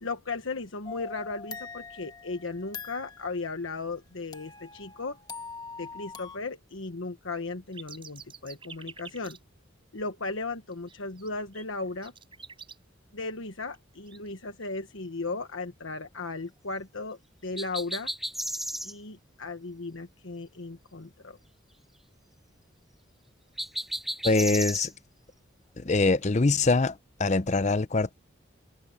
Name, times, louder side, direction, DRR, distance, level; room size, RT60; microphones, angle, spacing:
voice 1, 0.0-5.2 5.8-9.4 9.9-12.1 13.1-18.1 18.8-21.4, left 3 dB, 85° left, 1.3 m, -36 dB
sound 1, 0.8-3.3 4.3-6.4, left 5 dB, 20° left, 1.4 m, -43 dB
sound 2, 7.7-9.4 10.3-10.4 10.7-12.8 13.7-13.8 14.1-14.8, right 6 dB, 25° right, 4.6 m, -47 dB
sound 3, 17.6-18.9 23.6-24.9, equal, ahead, 0.9 m, -33 dB
voice 2, 24.2-24.9 25.8-28.1, left 3 dB, 35° left, 0.6 m, -24 dB
head